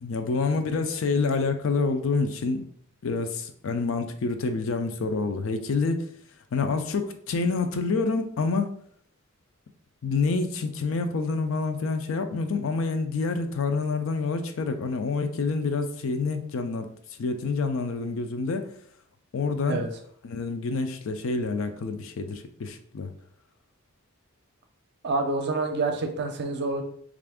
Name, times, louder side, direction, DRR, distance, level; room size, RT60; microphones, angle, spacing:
voice 1, 0.0-2.6 3.0-6.1 6.5-8.7 10.0-16.9 17.2-18.7 19.3-19.9 20.2-23.1, left 4 dB, 65° left, 8 dB, 0.4 m, -27 dB
voice 2, 25.0-26.8, right 3 dB, 55° right, 5 dB, 0.5 m, -27 dB
3.3 x 2.5 x 3.5 m, 0.62 s
head